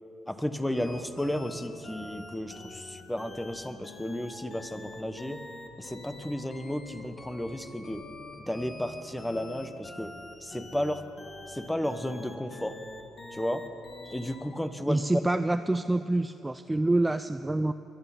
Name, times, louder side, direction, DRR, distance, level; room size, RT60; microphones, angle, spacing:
voice 1, 0.3-5.4 5.8-8.0 8.5-10.1 10.4-11.0 11.5-12.7 13.3-13.6 14.1-15.0, left 1 dB, 5° left, 10 dB, 0.9 m, -33 dB
sound 1, 0.7-14.5, left 2 dB, 50° left, 2.3 m, -45 dB
voice 2, 14.9-17.7, right 2 dB, 15° right, 10 dB, 0.4 m, -26 dB
22.0 x 11.0 x 5.7 m, 2.9 s
cardioid pair, 90°, 0 cm